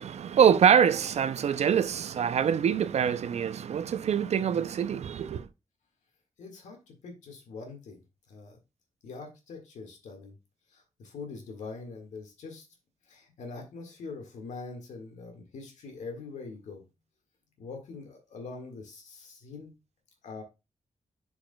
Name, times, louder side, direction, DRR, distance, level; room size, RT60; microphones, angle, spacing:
voice 1, 0.0-5.5, right 8 dB, 65° right, 0.5 m, -24 dB
voice 2, 6.4-8.0 8.3-8.6 9.0-10.4 10.7-12.7 13.1-16.8 17.6-19.7 20.2-20.4, left 4 dB, 90° left, 1.7 m, -43 dB
10.5 x 4.8 x 2.2 m
cardioid pair, 70°, 12 cm